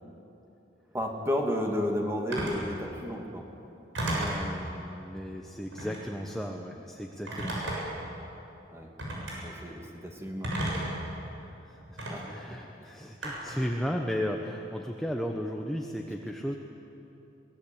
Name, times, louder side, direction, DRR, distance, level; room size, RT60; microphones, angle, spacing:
voice 1, 0.9-3.5 8.7-8.9 9.4-10.5 12.1-12.2 12.5-12.6, left 1 dB, 15° right, 1 dB, 2.7 m, -32 dB
Telephone, 2.3-2.6 3.9-4.5 5.7-6.1 7.3-8.0 9.0-9.4 10.4-11.0 12.0-12.1 13.2-13.6, right 1 dB, 75° right, 7.2 m, -32 dB
voice 2, 4.1-7.8 11.4-16.5, equal, ahead, 1 dB, 1.1 m, -35 dB
23.0 x 19.5 x 8.8 m, 2.9 s
head